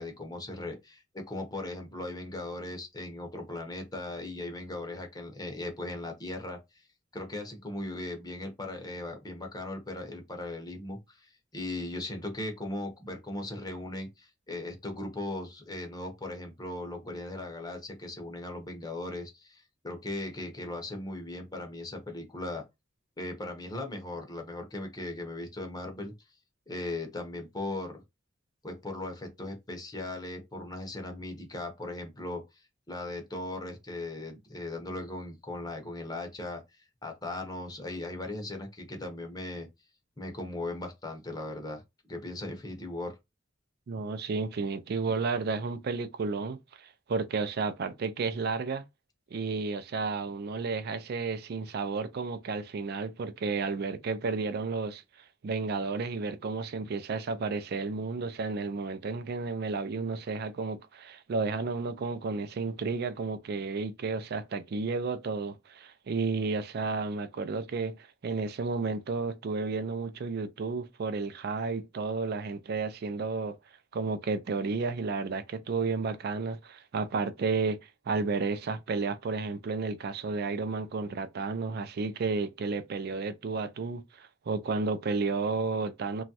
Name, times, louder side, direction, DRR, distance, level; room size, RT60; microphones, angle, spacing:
voice 1, 0.0-6.8 7.1-22.6 23.2-26.1 26.7-28.0 28.6-32.4 32.9-36.6 37.0-39.7 40.2-43.1, left 2 dB, 20° left, 0.6 m, -38 dB
voice 2, 43.9-48.8 49.3-55.0 55.4-73.6 73.9-77.8 78.1-86.2, right 4 dB, 55° right, 0.4 m, -32 dB
3.0 x 2.3 x 2.7 m
head